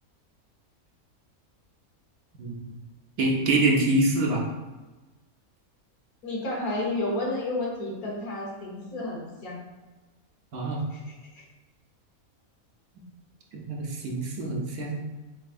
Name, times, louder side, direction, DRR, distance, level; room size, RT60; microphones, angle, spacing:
voice 1, 2.4-2.8 3.2-4.4 10.5-10.8 13.5-15.0, right 2 dB, 85° right, -2 dB, 1.3 m, -25 dB
voice 2, 6.2-9.6 10.9-11.0 11.4-11.5, left 2 dB, 80° left, -3 dB, 1.7 m, -31 dB
7.6 x 2.8 x 2.5 m, 1.2 s
omnidirectional pair, 1.5 m